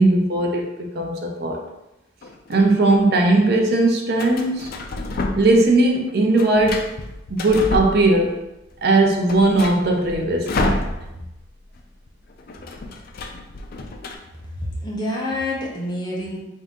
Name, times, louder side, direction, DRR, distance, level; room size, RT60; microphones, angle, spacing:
voice 1, 0.0-1.6 2.5-4.7 5.4-6.8 7.3-8.4 8.8-10.8, right 2 dB, 55° right, 1 dB, 0.6 m, -18 dB
sound 1, 2.2-3.0 4.2-5.7 6.0-8.4 8.8-8.9 9.1-11.4 11.6-11.8 12.1-14.2, left 2 dB, 50° left, 0.4 m, -29 dB
voice 2, 14.6-16.4, left 1 dB, 20° left, -4 dB, 0.8 m, -27 dB
3.7 x 2.7 x 3.6 m, 0.93 s
head